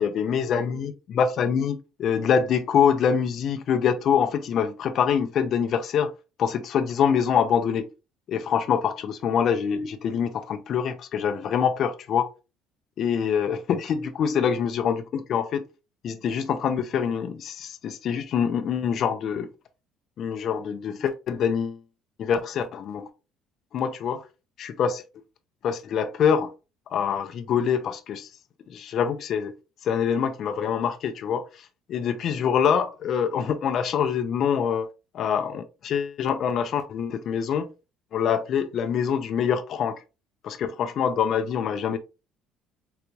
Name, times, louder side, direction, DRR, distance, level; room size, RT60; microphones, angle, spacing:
voice 1, 0.0-6.1 6.4-7.9 8.3-12.3 13.0-15.6 16.0-19.5 20.2-21.8 22.2-23.1 23.7-24.2 24.6-25.0 25.6-26.5 26.9-28.3 28.7-29.6 29.8-34.9 35.1-37.7 38.1-40.0 40.4-42.0, left 7 dB, 45° left, 0.4 m, -25 dB
3.9 x 3.0 x 2.2 m
cardioid pair, 140°, 0 cm